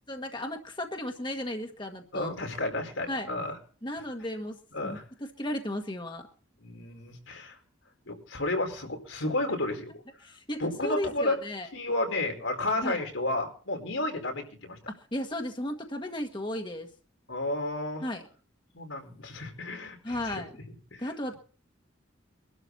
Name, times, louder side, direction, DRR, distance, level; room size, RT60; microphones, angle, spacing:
voice 1, 0.1-2.3 3.1-3.3 3.8-6.3 10.2-11.7 12.8-13.0 14.9-16.9 18.0-18.3 20.0-20.5 21.0-21.4, left 1 dB, 25° left, 4 dB, 1.5 m, -35 dB
voice 2, 2.1-3.6 4.7-5.0 6.6-7.6 8.1-9.9 10.6-11.4 11.7-14.8 17.3-18.0 18.7-20.4 20.9-21.1, left 2 dB, 85° left, 3 dB, 4.9 m, -32 dB
23.5 x 12.5 x 4.2 m, 0.42 s
head